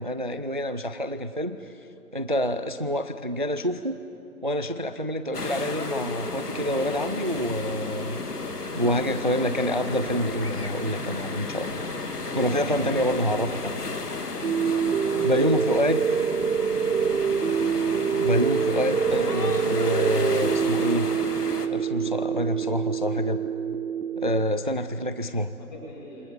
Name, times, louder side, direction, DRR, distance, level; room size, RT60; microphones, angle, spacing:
voice 1, 0.0-1.7 2.1-4.0 4.4-8.2 8.8-11.9 12.3-13.5 15.2-16.0 18.2-21.1 21.7-23.4 24.2-25.5, equal, 35° right, 11 dB, 0.5 m, -27 dB
sound 1, 5.3-21.7, left 3 dB, 85° left, 2.4 m, -33 dB
voice 2, 12.3-14.1 14.9-16.2 25.6-26.3, equal, 30° left, -2 dB, 7.2 m, -43 dB
sound 2, 14.4-24.4, right 7 dB, 75° right, 0.8 m, -26 dB
28.5 x 26.0 x 7.1 m, 2.8 s
figure-of-eight pair, 165°, 45 cm